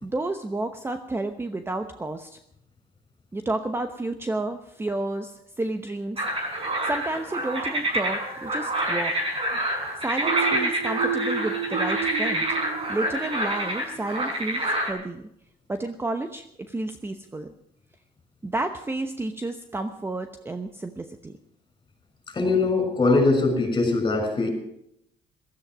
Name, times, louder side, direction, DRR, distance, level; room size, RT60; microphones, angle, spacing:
voice 1, 0.0-2.4 3.3-6.2 6.8-9.2 10.0-12.5 12.9-15.3 15.7-17.5 18.4-21.3, right 2 dB, 15° right, 8 dB, 0.9 m, -31 dB
sound 1, 6.2-14.9, right 1 dB, 30° right, 5.9 m, -27 dB
sound 2, 10.2-13.9, right 7 dB, 85° right, 1.4 m, -31 dB
voice 2, 22.3-24.5, left 3 dB, 25° left, 5 dB, 6.2 m, -21 dB
15.5 x 14.0 x 6.1 m, 0.75 s
cardioid pair, 110°, 17 cm